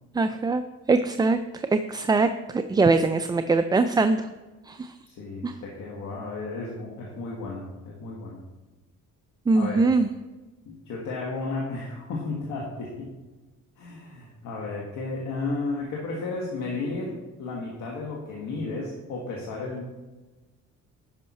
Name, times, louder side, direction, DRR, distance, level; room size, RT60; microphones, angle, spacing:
voice 1, 0.1-0.6 0.9-4.3 4.7-4.9 5.4-5.5 9.5-10.1, right 3 dB, 15° right, 9 dB, 0.3 m, -22 dB
voice 2, 5.0-8.4 9.5-9.8 10.6-13.1 13.8-19.9, left 3 dB, 80° left, -3 dB, 1.6 m, -33 dB
11.0 x 5.6 x 4.2 m, 1.2 s
cardioid pair, 90°, 30 cm